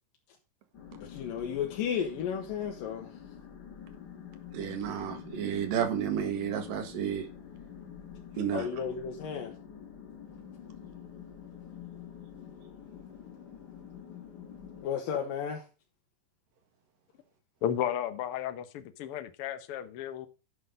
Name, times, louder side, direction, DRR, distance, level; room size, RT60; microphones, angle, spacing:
sound 1, 0.7-14.9, left 8 dB, 45° left, 1.4 m, -47 dB
voice 1, 1.0-3.1 8.5-9.5 14.8-15.6, left 8 dB, 90° left, 3.0 m, -33 dB
voice 2, 4.5-7.3 8.4-8.7, right 9 dB, 85° right, 3.2 m, -31 dB
voice 3, 17.6-20.3, left 10 dB, 65° left, 1.4 m, -33 dB
10.5 x 5.8 x 5.3 m
omnidirectional pair, 3.9 m